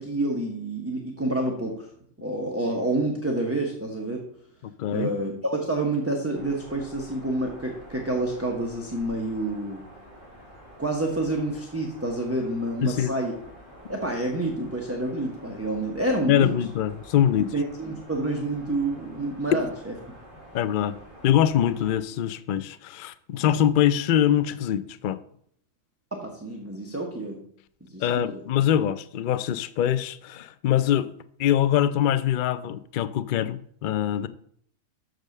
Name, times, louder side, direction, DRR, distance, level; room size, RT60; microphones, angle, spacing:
voice 1, 0.0-1.9 2.2-4.2 4.9-9.8 10.8-13.3 13.9-16.5 17.4-19.9 26.1-27.4 27.8-28.4, right 2 dB, 10° right, 0.9 m, -28 dB
voice 2, 4.6-5.1 12.8-13.1 16.3-17.5 20.5-20.9 21.2-25.2 28.0-31.1 31.4-34.3, left 10 dB, 70° left, 0.5 m, -23 dB
sound 1, 6.3-21.9, right 1 dB, 40° left, 2.8 m, -48 dB
6.3 x 5.1 x 6.6 m
omnidirectional pair, 1.3 m